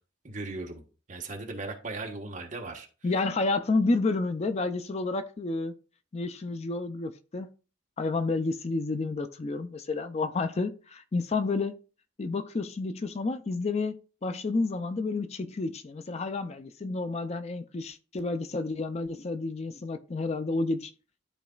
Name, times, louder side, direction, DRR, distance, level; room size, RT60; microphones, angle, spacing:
voice 1, 0.2-0.8 1.1-2.9, right 3 dB, 40° right, 2 dB, 1.2 m, -37 dB
voice 2, 3.0-5.7 6.1-7.5 8.0-11.7 12.2-13.9 14.2-20.9, left 3 dB, 35° left, 10 dB, 0.4 m, -30 dB
12.5 x 4.1 x 2.3 m, 0.36 s
head